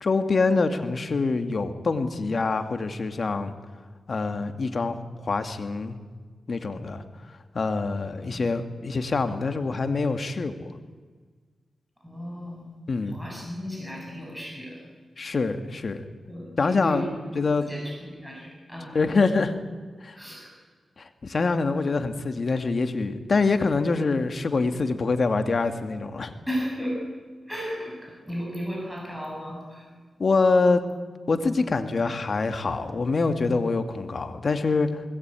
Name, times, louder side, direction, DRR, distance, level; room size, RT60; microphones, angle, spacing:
voice 1, 0.0-3.5 4.1-6.0 6.5-7.0 7.5-10.7 12.9-13.2 15.2-16.0 16.6-17.0 17.3-17.6 18.9-19.6 20.0-20.2 21.0-26.3 30.2-30.8 31.3-35.0, left 4 dB, 55° left, 8 dB, 2.1 m, -25 dB
voice 2, 12.0-12.7 13.1-14.9 16.3-17.1 17.6-19.0 20.1-20.5 26.5-27.1 27.5-29.9 32.1-32.2, equal, 5° right, -2 dB, 7.7 m, -35 dB
21.0 x 18.5 x 9.1 m, 1.5 s
cardioid pair, 60°, 0 cm